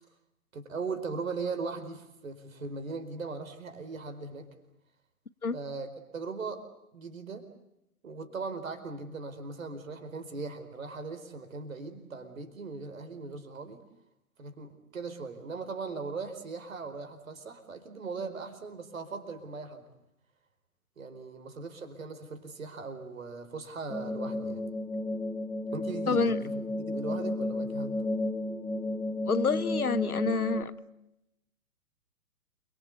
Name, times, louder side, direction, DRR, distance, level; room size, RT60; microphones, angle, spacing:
voice 1, 0.5-4.5 5.5-6.6 6.9-7.5 8.0-13.8 14.4-19.9 21.0-24.6 25.7-27.9, right 4 dB, 65° right, 8 dB, 4.7 m, -39 dB
sound 1, 23.9-30.6, left 1 dB, 5° left, 1.6 m, -33 dB
voice 2, 26.1-26.4 29.3-30.7, left 4 dB, 80° left, 16 dB, 1.4 m, -28 dB
28.5 x 24.0 x 8.3 m, 0.85 s
figure-of-eight pair, 115°, 44 cm